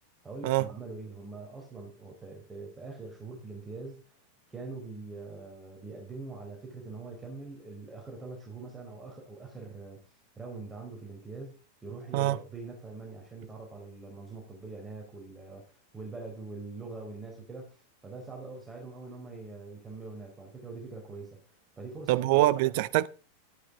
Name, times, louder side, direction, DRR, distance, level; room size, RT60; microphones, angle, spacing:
voice 1, 0.2-4.2 4.5-22.5, right 3 dB, 15° right, 4.3 m, -43 dB
voice 2, 22.1-23.1, right 16 dB, 50° right, 0.8 m, -24 dB
13.0 x 11.5 x 3.7 m
figure-of-eight pair, 90°, 0 cm